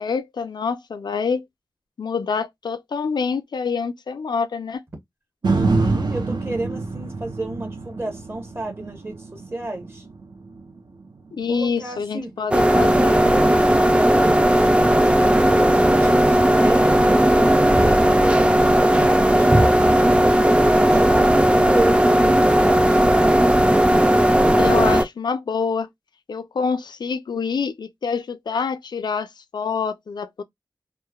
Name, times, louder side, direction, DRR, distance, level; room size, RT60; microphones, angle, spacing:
voice 1, 0.0-1.4 2.0-4.8 11.3-13.3 24.6-25.9 26.3-30.4, left 5 dB, 80° left, 0.4 m, -26 dB
voice 2, 5.4-10.0 11.5-12.3 13.7-23.2, right 2 dB, 35° right, 0.8 m, -32 dB
sound 1, 5.4-13.6 14.1-14.2, right 3 dB, 80° right, 0.6 m, -27 dB
sound 2, 12.5-25.0, right 1 dB, 15° right, 0.3 m, -16 dB
3.0 x 2.0 x 2.2 m
wide cardioid pair, 80°, 7 cm